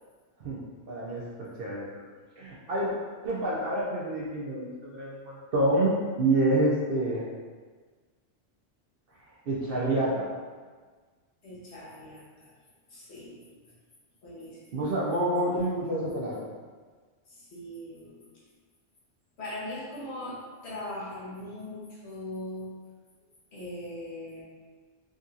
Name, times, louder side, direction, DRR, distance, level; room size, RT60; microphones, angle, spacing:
voice 1, 0.9-1.9 2.4-2.9 3.2-7.3 9.5-10.3 14.7-16.4, right 1 dB, 60° right, -5 dB, 0.7 m, -28 dB
voice 2, 11.4-12.5 12.9-13.6 14.2-14.9 17.3-18.3 19.4-22.7 23.5-24.4, left 1 dB, 65° left, -7 dB, 1.1 m, -40 dB
3.6 x 2.6 x 2.4 m, 1.5 s
omnidirectional pair, 1.3 m